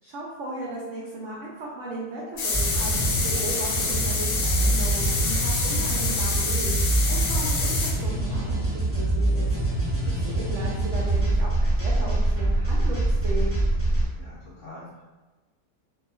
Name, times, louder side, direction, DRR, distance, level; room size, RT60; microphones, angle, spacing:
voice 1, 0.0-9.5 10.2-13.5, right 2 dB, 80° right, -5 dB, 0.6 m, -36 dB
sound 1, 2.4-7.9, left 4 dB, 85° left, 1.2 m, -27 dB
sound 2, 2.5-14.1, right 1 dB, 15° left, 0.5 m, -25 dB
voice 2, 10.0-10.4 14.1-15.0, left 3 dB, 65° left, -7 dB, 0.8 m, -44 dB
2.7 x 2.2 x 2.3 m, 1.2 s
omnidirectional pair, 1.8 m